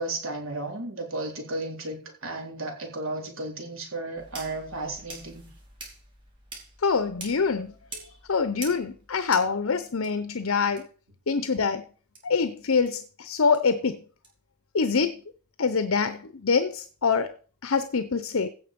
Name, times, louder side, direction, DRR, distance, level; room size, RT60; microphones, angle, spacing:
voice 1, 0.0-5.5, right 2 dB, 65° right, 3.8 m, -34 dB
sound 1, 4.2-10.1 10.8-10.9 11.4-11.5 12.1-12.2 12.9-13.0 13.5-13.6 14.2-14.3 14.9-15.0, right 2 dB, 25° right, 4.0 m, -45 dB
voice 2, 6.8-10.8 11.3-11.8 12.2-14.0 14.7-15.2 15.6-17.3 17.6-18.5, left 5 dB, 65° left, 0.7 m, -25 dB
16.0 x 5.9 x 5.2 m
head